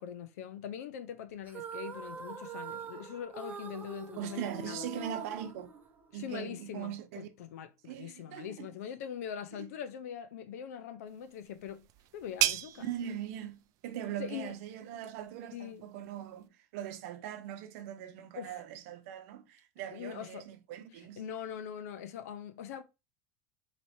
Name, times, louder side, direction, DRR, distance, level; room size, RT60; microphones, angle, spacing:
voice 1, 0.0-4.9 6.1-11.8 12.1-12.8 14.2-14.5 15.5-15.9 18.3-18.6 19.9-20.5 21.2-22.8, left 9 dB, 75° left, 0.8 m, -42 dB
sound 1, 1.5-6.3, right 4 dB, 20° right, 0.8 m, -44 dB
voice 2, 4.2-5.7 6.1-7.3 7.8-8.7 9.6-9.7 12.8-21.2, right 10 dB, 65° right, 0.8 m, -41 dB
sound 2, 11.1-16.5, right 15 dB, 45° right, 0.3 m, -38 dB
4.3 x 3.1 x 2.8 m
supercardioid pair, 130°, 8 cm